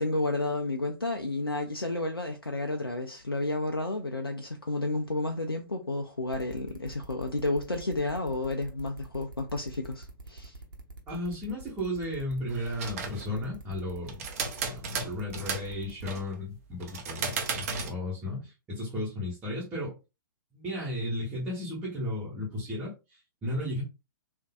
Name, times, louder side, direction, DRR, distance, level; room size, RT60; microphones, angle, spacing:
voice 1, 0.0-10.6, left 2 dB, 85° left, 0.5 m, -31 dB
sound 1, 6.3-16.2, right 2 dB, 65° right, 0.9 m, -46 dB
voice 2, 11.1-14.2 14.6-19.9 20.5-23.8, left 1 dB, 15° right, 1.2 m, -34 dB
sound 2, 12.5-13.3 14.1-15.7 16.0-16.3 16.8-17.9, right 5 dB, 40° right, 0.7 m, -34 dB
3.6 x 2.6 x 2.3 m
figure-of-eight pair, 120°, 12 cm